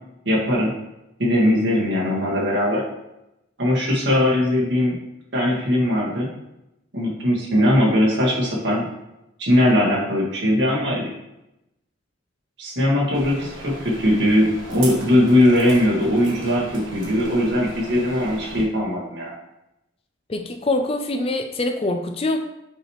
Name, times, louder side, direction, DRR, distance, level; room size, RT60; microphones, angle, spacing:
voice 1, 0.3-0.7 1.2-2.8 3.6-5.0 5.3-6.3 6.9-8.9 9.4-11.1 12.6-19.3, left 1 dB, 65° right, -4 dB, 1.8 m, -20 dB
sound 1, 13.1-18.6, right 2 dB, 80° right, 1.4 m, -37 dB
voice 2, 20.3-22.4, left 2 dB, 30° left, 6 dB, 0.4 m, -24 dB
6.4 x 4.8 x 3.1 m, 0.90 s
head